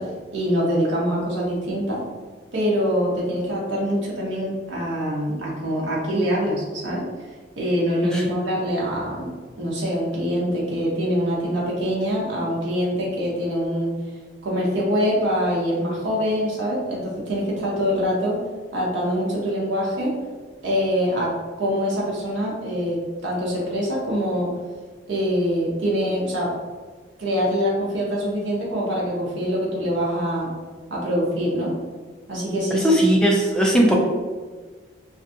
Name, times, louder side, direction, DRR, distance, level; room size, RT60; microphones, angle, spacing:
voice 1, 0.0-2.0 2.5-7.1 7.6-13.9 14.4-18.4 18.7-20.2 20.6-24.5 25.1-26.5 27.2-30.5 30.9-31.7 32.3-32.9, equal, 90° right, -4 dB, 0.7 m, -24 dB
voice 2, 32.7-33.9, equal, 5° left, -2 dB, 0.4 m, -18 dB
2.5 x 2.3 x 2.6 m, 1.4 s
head